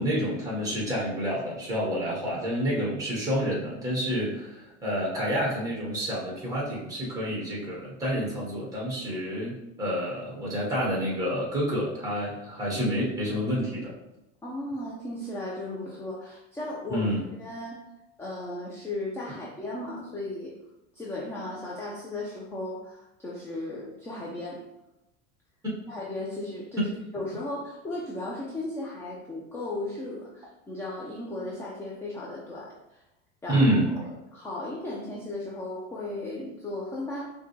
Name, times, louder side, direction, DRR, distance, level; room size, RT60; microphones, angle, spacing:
voice 1, 0.0-13.9 16.9-17.2 33.5-33.9, equal, 10° right, -4 dB, 1.4 m, -28 dB
voice 2, 14.4-17.1 17.4-17.8 18.2-20.5 20.9-24.6 25.9-26.8 27.1-32.8 33.4-33.6 34.3-37.3, left 2 dB, 5° left, -4 dB, 0.4 m, -36 dB
5.6 x 2.3 x 3.2 m, 0.92 s
supercardioid pair, 140°, 35 cm